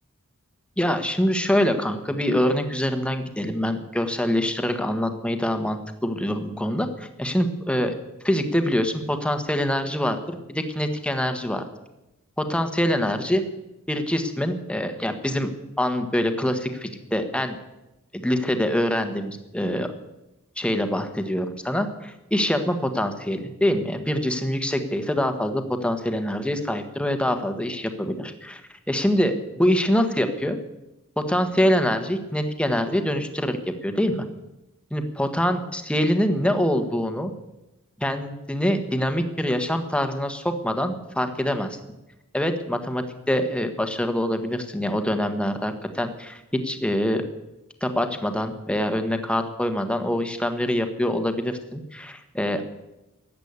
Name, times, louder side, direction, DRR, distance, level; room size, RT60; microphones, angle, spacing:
voice 1, 0.8-7.9 8.2-11.6 12.4-13.4 13.9-15.5 15.8-17.6 18.1-19.9 20.6-28.6 28.9-30.6 31.3-34.2 34.9-37.3 38.0-41.8 42.3-47.3 47.8-52.6, equal, 5° left, 7 dB, 1.4 m, -25 dB
15.5 x 10.5 x 8.2 m, 0.96 s
head